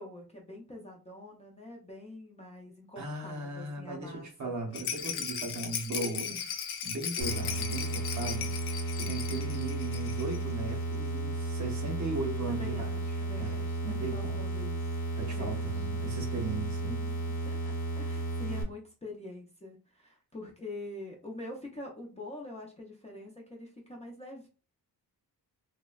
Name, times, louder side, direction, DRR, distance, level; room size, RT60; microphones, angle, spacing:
voice 1, 0.0-4.6 12.4-15.0 15.3-15.9 16.9-24.5, left 1 dB, 15° left, 0.5 m, -45 dB
voice 2, 3.0-6.4 6.8-8.5 8.9-13.0 13.4-14.4 15.2-16.9, right 2 dB, 50° right, 0.7 m, -37 dB
Rattle, 4.7-10.4 10.7-10.8 11.0-11.1, left 8 dB, 80° left, 0.5 m, -37 dB
sound 1, 7.2-18.6, right 2 dB, 55° left, 0.9 m, -34 dB
3.2 x 2.1 x 2.2 m
wide cardioid pair, 170°, 39 cm